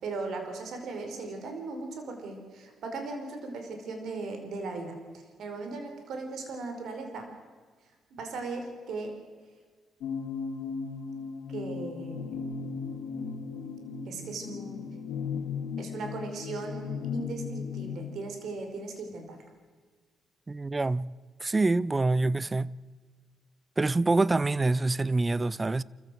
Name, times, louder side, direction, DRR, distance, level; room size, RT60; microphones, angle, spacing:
voice 1, 0.0-4.9 5.4-7.3 8.1-9.1 11.5-12.4 14.1-14.8 15.8-19.4, right 3 dB, 70° right, 5.1 m, -38 dB
sound 1, 10.0-18.2, left 5 dB, 85° left, 2.2 m, -36 dB
voice 2, 20.5-21.1 21.4-22.7 23.8-25.8, right 3 dB, 20° right, 0.7 m, -26 dB
27.5 x 15.0 x 7.9 m
cardioid pair, 90°, 0 cm